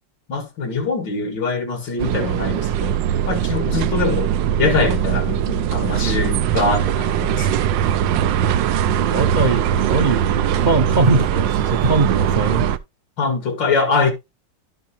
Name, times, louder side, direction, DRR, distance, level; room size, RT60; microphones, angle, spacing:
voice 1, 0.3-3.0 3.3-4.3 4.6-7.6 13.2-14.1, left 4 dB, 85° left, 2.8 m, -23 dB
sound 1, 2.0-12.8, right 10 dB, 85° right, 1.4 m, -20 dB
voice 2, 9.0-12.7, right 3 dB, 40° right, 0.6 m, -21 dB
12.0 x 6.3 x 2.9 m
omnidirectional pair, 1.9 m